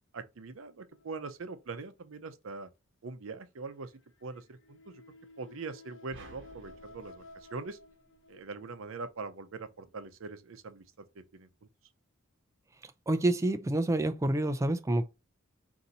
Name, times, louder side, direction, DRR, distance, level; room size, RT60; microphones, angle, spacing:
voice 1, 0.1-2.7 3.0-3.9 4.2-5.0 5.4-7.2 7.5-7.8 8.3-10.8 11.3-11.5, right 4 dB, 80° right, 0.6 m, -42 dB
sound 1, 0.9-1.9 3.9-9.0 9.7-9.9 10.7-10.8, left 3 dB, 65° left, 0.7 m, -55 dB
sound 2, 6.1-8.5, right 3 dB, 60° right, 0.9 m, -55 dB
voice 2, 12.8-15.1, right 1 dB, 15° right, 0.3 m, -28 dB
4.0 x 2.7 x 4.1 m
head